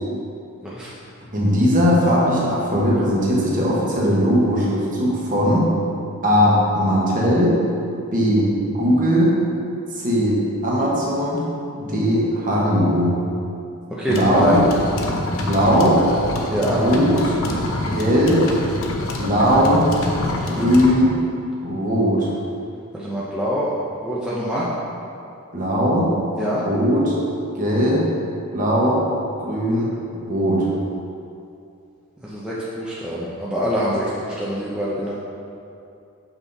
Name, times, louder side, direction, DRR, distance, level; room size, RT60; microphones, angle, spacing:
voice 1, 1.3-5.7 6.2-7.6 8.1-8.5 8.8-9.4 9.9-11.4 11.7-13.2 14.1-14.7 15.4-16.0 16.6-17.3 17.9-18.4 19.2-19.9 20.4-21.1 21.6-22.3 25.5-26.1 26.6-27.1 27.6-28.1 28.5-29.0 29.4-29.9 30.2-30.7, equal, 40° right, -5 dB, 1.4 m, -19 dB
voice 2, 13.9-14.5 16.5-16.8 22.9-23.7 24.0-24.7 26.4-26.7 32.2-35.1, equal, 5° right, -8 dB, 0.7 m, -24 dB
sound 1, 14.1-20.9, left 2 dB, 65° left, 0.7 m, -26 dB
6.3 x 5.8 x 4.1 m, 2.6 s
head